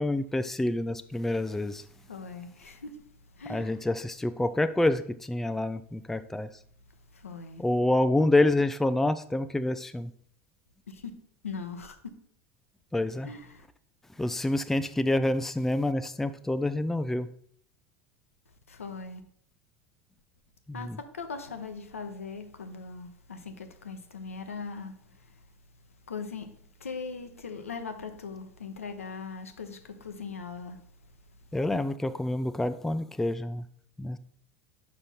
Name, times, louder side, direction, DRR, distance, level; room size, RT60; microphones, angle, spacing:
voice 1, 0.0-1.8 3.5-6.5 7.6-10.1 12.9-13.3 14.2-17.3 20.7-21.0 31.5-33.6 34.0-34.2, left 1 dB, 5° left, 0.4 m, -27 dB
voice 2, 2.1-3.0 3.4-3.8 7.1-7.6 10.9-11.1 11.4-12.0 13.2-13.7 18.7-19.2 20.7-25.4 26.1-30.8, left 4 dB, 80° left, 0.8 m, -40 dB
6.3 x 5.4 x 4.3 m
figure-of-eight pair, 75°, 7 cm